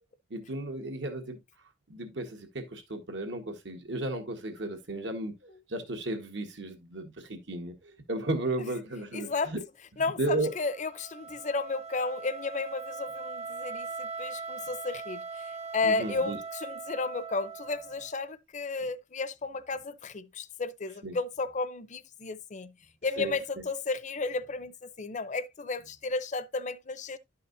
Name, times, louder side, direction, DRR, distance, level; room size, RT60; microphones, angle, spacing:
voice 1, 0.3-1.4 1.9-9.6 10.2-10.5 15.8-16.4 21.0-21.2 23.2-23.6, right 2 dB, 70° right, 1.7 m, -34 dB
voice 2, 9.1-9.5 10.0-22.7 23.0-27.2, left 3 dB, 40° left, 0.7 m, -33 dB
Wind instrument woodwind instrument, 10.2-18.2, right 4 dB, 35° right, 0.6 m, -41 dB
11.5 x 5.7 x 2.6 m
head